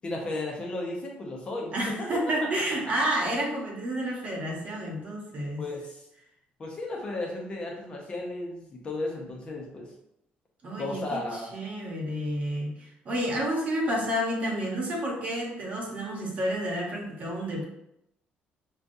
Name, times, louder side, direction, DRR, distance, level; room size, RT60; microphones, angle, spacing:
voice 1, 0.0-2.0 5.6-6.0 6.6-9.9 10.8-11.5, left 2 dB, 30° left, -1 dB, 0.8 m, -34 dB
voice 2, 1.7-5.6 10.6-17.6, right 1 dB, 40° right, -2 dB, 1.1 m, -30 dB
5.1 x 2.4 x 2.6 m, 0.80 s
cardioid pair, 140°, 4 cm